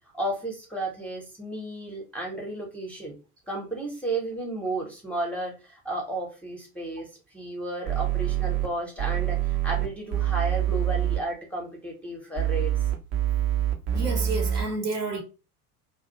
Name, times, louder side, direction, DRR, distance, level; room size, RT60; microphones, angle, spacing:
voice 1, 0.1-3.1 3.5-7.1 7.3-9.4 9.6-12.7, right 2 dB, 5° left, 0.6 m, -33 dB
sound 1, 7.9-8.7 9.0-11.2 12.4-14.7, right 11 dB, 50° right, 0.6 m, -25 dB
voice 2, 13.9-15.2, right 3 dB, 75° right, 0.9 m, -30 dB
2.3 x 2.0 x 2.7 m
figure-of-eight pair, 70°, 48 cm